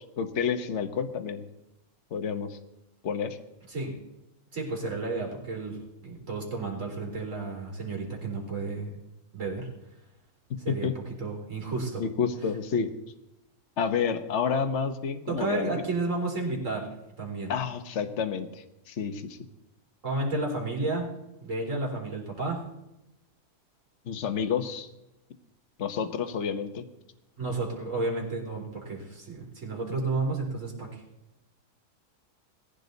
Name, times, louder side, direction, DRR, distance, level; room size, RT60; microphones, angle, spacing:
voice 1, 0.2-1.4 2.1-2.6 3.0-3.4 10.7-10.9 12.0-12.9 13.8-15.8 17.5-19.4 24.1-24.9 25.8-26.8, left 6 dB, 50° left, 7 dB, 1.4 m, -29 dB
voice 2, 4.5-8.9 9.3-9.7 10.6-10.9 11.2-12.1 15.3-16.9 17.2-17.5 20.0-21.1 21.4-22.6 27.4-31.0, right 3 dB, 55° right, -1 dB, 4.2 m, -32 dB
20.0 x 15.0 x 4.1 m, 0.92 s
omnidirectional pair, 1.6 m